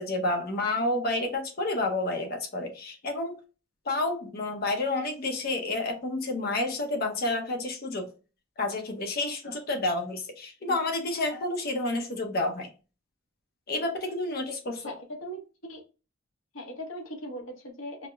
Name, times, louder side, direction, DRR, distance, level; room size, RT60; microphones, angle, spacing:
voice 1, 0.0-3.4 3.9-8.1 8.6-12.7 13.7-14.9, left 2 dB, 45° left, 0.7 m, -30 dB
voice 2, 14.8-15.4 15.7-15.8 16.5-18.1, equal, 75° left, 1.0 m, -39 dB
4.8 x 2.1 x 2.3 m
head